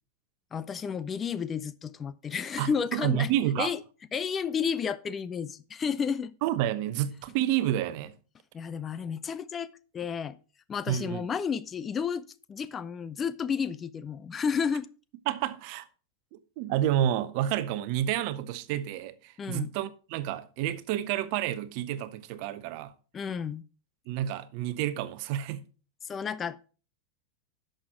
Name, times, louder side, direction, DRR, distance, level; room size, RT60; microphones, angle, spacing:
voice 1, 0.5-3.3 3.6-3.8 4.1-6.3 8.5-10.4 10.7-12.2 12.5-14.9 19.4-19.7 23.1-23.6 26.0-26.7, left 6 dB, 20° left, 0.5 m, -32 dB
voice 2, 2.6-3.7 6.4-8.1 10.9-11.3 15.3-15.9 16.3-22.9 24.1-25.7, right 12 dB, 45° right, 0.8 m, -29 dB
11.0 x 6.6 x 4.4 m
figure-of-eight pair, 90°, 0 cm